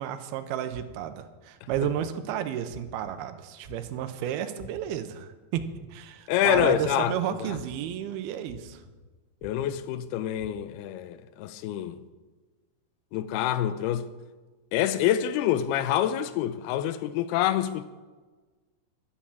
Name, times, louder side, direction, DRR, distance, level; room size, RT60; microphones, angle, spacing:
voice 1, 0.0-8.8, right 10 dB, 90° right, 2.6 m, -32 dB
sound 1, 0.7-1.1 1.7-2.1 2.7-3.1 3.6-4.1 4.6-5.0 5.5-6.0 6.5-6.9 7.5-7.9 8.5-8.9 9.4-9.8 10.4-10.5, left 3 dB, 45° right, 2.9 m, -45 dB
voice 2, 6.3-7.1 7.4-7.6 9.4-12.0 13.1-14.1 14.7-17.8, left 11 dB, 85° left, 2.6 m, -26 dB
13.0 x 8.5 x 7.2 m
omnidirectional pair, 4.5 m